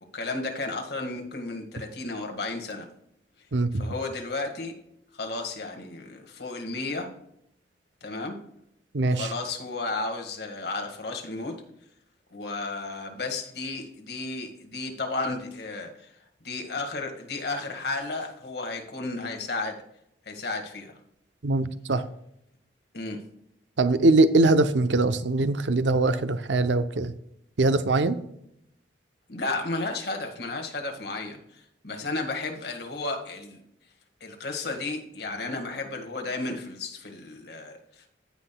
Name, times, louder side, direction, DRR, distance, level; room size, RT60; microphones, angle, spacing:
voice 1, 0.1-2.9 3.7-4.8 5.1-7.2 8.0-8.4 9.0-11.6 12.3-16.1 16.4-19.8 20.3-20.9 22.9-23.2 29.3-33.6 34.2-38.0, left 3 dB, 60° left, 3 dB, 1.8 m, -33 dB
voice 2, 3.5-3.9 8.9-9.3 21.4-22.0 23.8-27.1 27.6-28.2, right 2 dB, 80° right, 12 dB, 0.7 m, -22 dB
16.5 x 5.8 x 2.3 m, 0.75 s
head